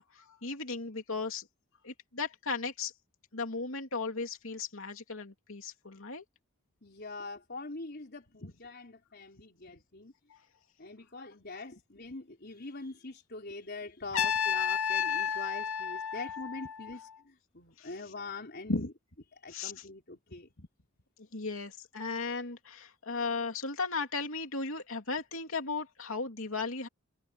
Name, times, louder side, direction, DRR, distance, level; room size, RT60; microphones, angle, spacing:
voice 1, 0.0-1.5 1.8-2.9 3.3-6.2 10.3-10.4 17.8-17.9 18.7-18.9 19.5-19.8 20.6-20.7 21.3-26.9, left 4 dB, 65° left, 3.1 m, -36 dB
voice 2, 6.8-10.1 10.8-18.8 19.4-20.5, left 3 dB, 50° left, 4.1 m, -44 dB
Trumpet, 14.1-17.1, left 7 dB, 85° left, 2.3 m, -31 dB
head